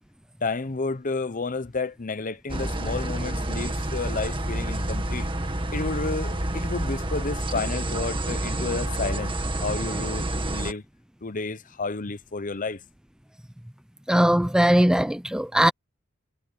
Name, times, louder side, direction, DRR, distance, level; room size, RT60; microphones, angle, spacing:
voice 1, 0.4-5.3 5.7-9.3 9.6-10.8 11.2-12.8, left 3 dB, 40° left, 0.9 m, -31 dB
sound 1, 2.5-10.7, right 1 dB, 25° right, 2.0 m, -29 dB
voice 2, 14.1-15.7, equal, 5° right, 0.6 m, -20 dB
head